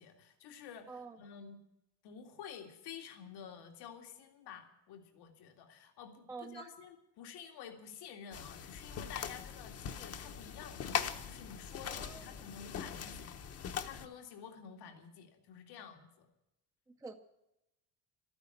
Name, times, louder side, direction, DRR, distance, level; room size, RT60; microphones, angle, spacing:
voice 1, 0.0-1.6 2.0-16.3, left 7 dB, 85° left, 5 dB, 2.2 m, -51 dB
voice 2, 0.9-1.2 6.3-6.7 11.8-12.4 16.9-17.1, right 4 dB, 10° right, 5 dB, 0.6 m, -47 dB
sound 1, 8.3-14.1, left 7 dB, 40° left, 0.9 m, -41 dB
13.0 x 9.5 x 9.7 m, 0.86 s
cardioid pair, 175°, 39 cm